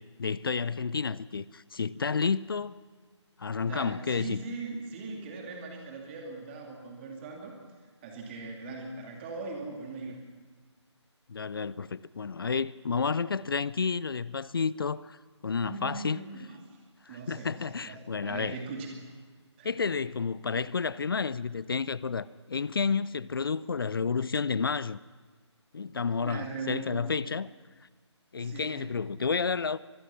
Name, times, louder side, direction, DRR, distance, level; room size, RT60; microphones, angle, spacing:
voice 1, 0.0-2.7 3.4-4.4 11.3-15.2 15.4-16.2 17.1-18.6 19.6-25.0 25.7-27.5 28.3-29.8, left 5 dB, 50° left, 0.5 m, -30 dB
voice 2, 3.6-7.6 8.0-10.2 15.6-16.8 17.1-19.1 19.6-19.8 26.2-27.0 28.4-28.9, right 3 dB, 25° right, 2.5 m, -40 dB
24.5 x 20.5 x 5.8 m
figure-of-eight pair, 145°, 15 cm